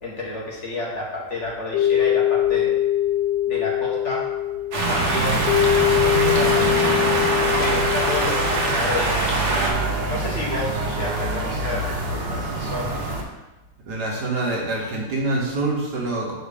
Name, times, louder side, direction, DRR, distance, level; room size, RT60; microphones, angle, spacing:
voice 1, 0.0-2.7 3.5-4.3 4.9-5.4 5.7-9.2 9.5-9.8 10.1-13.0, left 2 dB, 45° left, -4 dB, 1.4 m, -30 dB
sound 1, 1.7-9.0, left 11 dB, 85° left, 1.3 m, -22 dB
sound 2, 4.7-9.7, right 2 dB, 45° right, 1.3 m, -24 dB
sound 3, 4.7-13.2, right 2 dB, 85° right, 1.8 m, -26 dB
voice 2, 13.9-16.3, right 2 dB, 65° right, -2 dB, 1.9 m, -25 dB
6.5 x 4.3 x 5.0 m, 1.1 s
omnidirectional pair, 1.9 m